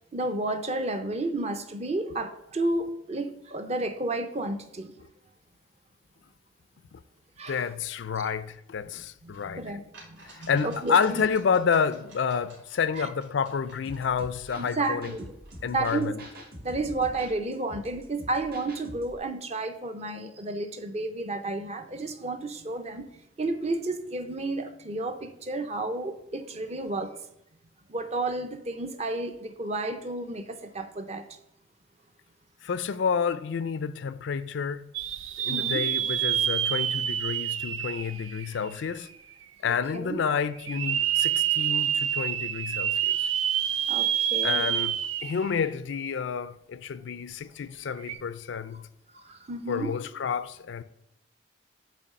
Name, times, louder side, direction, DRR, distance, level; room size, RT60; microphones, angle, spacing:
voice 1, 0.1-4.9 7.4-7.6 9.2-11.3 12.9-13.1 14.6-15.3 15.7-16.2 16.6-27.2 27.9-31.2 35.5-35.9 39.6-40.2 43.9-44.7 49.1-49.9, right 2 dB, 35° right, 0.6 m, -32 dB
voice 2, 7.5-9.6 10.5-15.1 15.6-16.2 32.6-34.9 35.4-39.1 39.6-43.3 44.4-44.9 45.2-48.8 49.7-50.8, left 6 dB, 70° left, 0.4 m, -29 dB
chess pawn rolling in glass, 9.3-9.4 9.9-15.7, right 2 dB, 70° right, 2.4 m, -54 dB
sound 1, 13.8-19.2, equal, 50° right, 1.5 m, -45 dB
sound 2, 34.9-38.9 39.4-39.5 40.6-45.5 45.9-46.0 48.0-48.1, right 10 dB, 85° right, 0.4 m, -27 dB
8.5 x 3.1 x 5.3 m
head